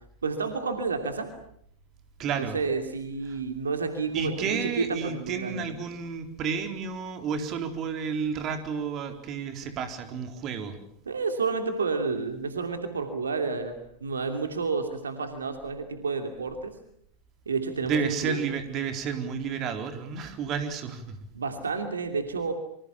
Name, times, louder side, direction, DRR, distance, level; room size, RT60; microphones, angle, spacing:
voice 1, 0.2-1.3 2.4-5.7 11.1-16.7 17.5-18.4 21.3-22.5, right 4 dB, 80° right, 6 dB, 2.8 m, -30 dB
voice 2, 2.2-2.6 3.3-3.4 4.1-10.8 17.8-21.2, right 6 dB, 40° right, 7 dB, 4.1 m, -31 dB
27.5 x 25.0 x 7.2 m, 0.69 s
figure-of-eight pair, 90°, 0 cm